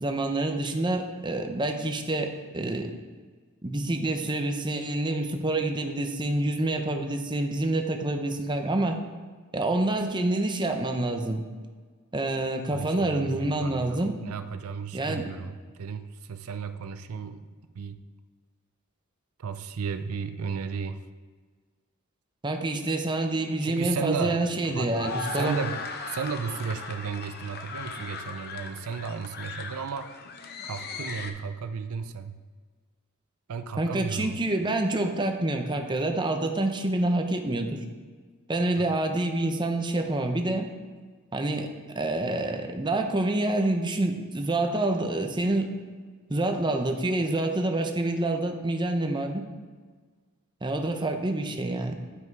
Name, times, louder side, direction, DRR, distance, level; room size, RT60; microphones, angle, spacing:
voice 1, 0.0-2.9 3.6-9.0 9.5-11.4 12.1-14.1 14.9-15.3 22.4-25.6 33.8-37.8 38.5-40.7 41.3-41.7 42.0-45.7 46.3-49.4 50.6-52.0, right 2 dB, 20° right, 4 dB, 0.7 m, -27 dB
voice 2, 12.7-17.5 17.7-18.0 19.4-21.0 23.6-30.1 30.6-32.4 33.5-34.4 38.8-39.0, right 6 dB, 80° right, 9 dB, 0.5 m, -34 dB
sound 1, 23.3-31.3, left 4 dB, 50° left, 0.7 m, -38 dB
9.6 x 5.7 x 4.6 m, 1.5 s
head